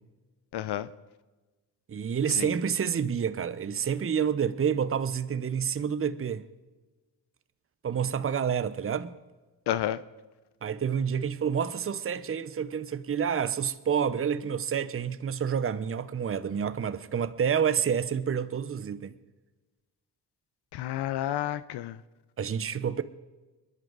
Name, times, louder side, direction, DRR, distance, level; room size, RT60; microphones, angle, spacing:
voice 1, 0.5-0.9 2.3-2.5 9.7-10.0 20.7-22.0, left 12 dB, 60° left, 0.7 m, -30 dB
voice 2, 1.9-6.4 7.8-9.2 10.6-19.1 22.4-23.0, right 7 dB, 30° right, 0.9 m, -28 dB
23.0 x 11.0 x 4.0 m
supercardioid pair, 60°, 45 cm